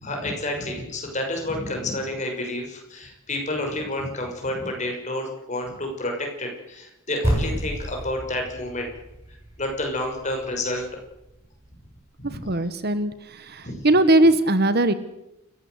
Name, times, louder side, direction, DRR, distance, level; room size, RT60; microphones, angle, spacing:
voice 1, 0.0-8.9 9.6-10.9 12.2-12.5 13.6-13.9, left 1 dB, 35° left, 2 dB, 6.1 m, -29 dB
sound 1, 7.2-11.8, right 1 dB, 15° right, 7.2 m, -31 dB
voice 2, 12.5-14.9, right 1 dB, 50° right, 13 dB, 1.3 m, -20 dB
29.0 x 15.5 x 8.0 m, 0.89 s
head